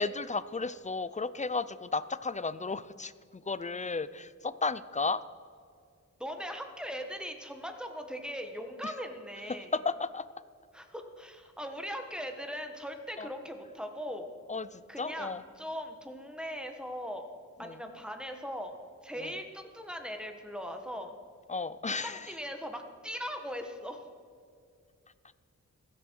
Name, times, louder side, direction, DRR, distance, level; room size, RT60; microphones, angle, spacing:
voice 1, 0.0-5.2 8.8-8.9 9.5-10.3 13.2-13.3 14.5-15.4 17.6-17.8 19.2-19.3 21.5-22.3, left 4 dB, 25° left, 16 dB, 0.5 m, -34 dB
voice 2, 6.2-9.7 10.7-14.3 14.9-17.3 17.6-18.7 19.0-21.2 22.0-24.1, equal, 5° right, 5 dB, 1.4 m, -39 dB
16.0 x 13.5 x 4.7 m, 2.3 s
wide cardioid pair, 120°, 30 cm